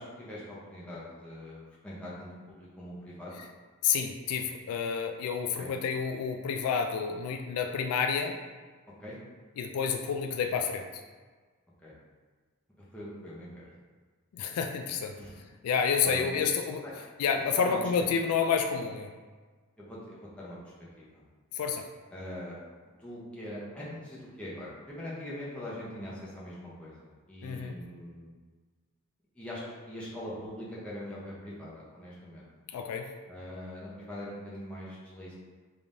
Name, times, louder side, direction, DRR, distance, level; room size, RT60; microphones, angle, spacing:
voice 1, 0.0-3.3 5.6-5.7 9.0-9.2 11.8-11.9 12.9-13.7 15.1-15.3 16.1-16.4 16.8-16.9 17.6-17.8 19.8-20.6 21.0-21.2 22.1-22.6 23.0-28.3 29.3-32.5 33.3-35.3, left 1 dB, 5° left, -8 dB, 0.8 m, -42 dB
voice 2, 3.8-8.4 9.6-10.9 14.3-15.2 15.6-16.8 17.2-19.1 21.5-21.9 27.4-27.8 32.7-33.1, left 6 dB, 80° left, 5 dB, 0.3 m, -29 dB
3.5 x 3.3 x 2.6 m, 1.4 s
head